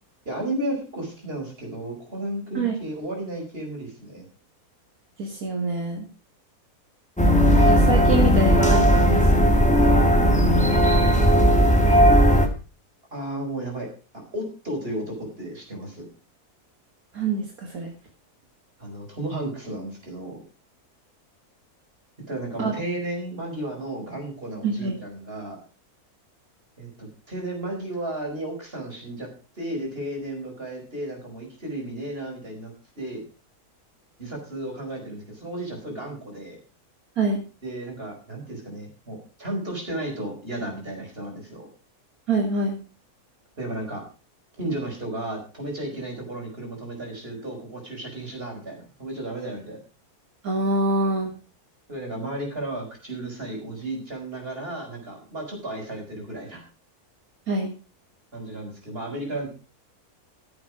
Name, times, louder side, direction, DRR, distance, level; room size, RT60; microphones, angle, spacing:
voice 1, 0.3-4.2 10.7-12.0 13.1-16.0 18.8-20.4 22.3-25.6 26.8-29.3 29.6-33.2 34.2-36.6 37.6-41.7 43.6-44.0 44.6-49.8 51.9-56.6 58.3-59.5, right 1 dB, 35° right, 1 dB, 5.1 m, -33 dB
voice 2, 5.2-6.1 7.6-9.5 17.1-17.9 22.6-22.8 24.6-25.0 37.2-37.4 42.3-42.8 50.4-51.3 57.5-57.7, right 3 dB, 65° right, 1 dB, 2.4 m, -25 dB
sound 1, 7.2-12.5, equal, 5° left, 1.9 m, -17 dB
15.5 x 7.9 x 4.9 m, 0.34 s
omnidirectional pair, 1.6 m